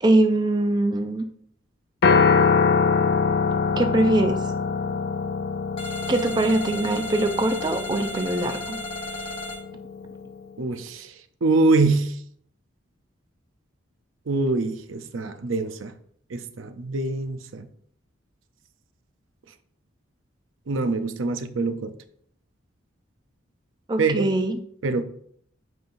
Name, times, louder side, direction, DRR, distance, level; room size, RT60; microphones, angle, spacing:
voice 1, 0.0-1.2 3.7-4.4 6.1-8.8 23.9-24.6, right 2 dB, 20° right, 7 dB, 0.4 m, -22 dB
Piano, 2.0-10.3, left 5 dB, 50° left, 0.4 m, -24 dB
sound 1, 5.8-9.6, left 1 dB, 25° left, 0.9 m, -34 dB
voice 2, 10.6-11.1 11.4-12.2 14.3-15.9 16.3-17.7 20.7-21.9 24.0-24.3 24.8-25.0, right 3 dB, 80° right, 10 dB, 0.6 m, -24 dB
9.1 x 5.5 x 2.6 m, 0.65 s
head